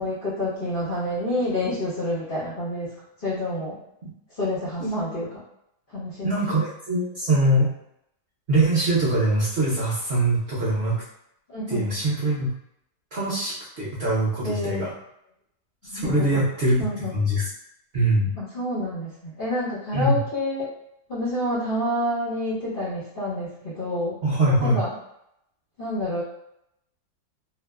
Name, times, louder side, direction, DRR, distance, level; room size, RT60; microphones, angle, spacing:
voice 1, 0.0-2.9 3.2-3.8 4.4-5.3 5.9-6.3 11.5-11.9 14.4-14.8 15.9-16.5 16.8-17.2 18.4-20.7 21.1-24.1 24.6-24.9 25.8-26.2, left 1 dB, 50° left, -8 dB, 0.6 m, -28 dB
voice 2, 4.8-5.2 6.2-7.7 8.5-11.0 11.7-12.5 13.1-14.9 15.9-17.5 17.9-18.3 19.9-20.2 24.2-24.8, right 1 dB, 55° right, -9 dB, 0.7 m, -23 dB
2.8 x 2.1 x 2.3 m, 0.77 s
omnidirectional pair, 1.8 m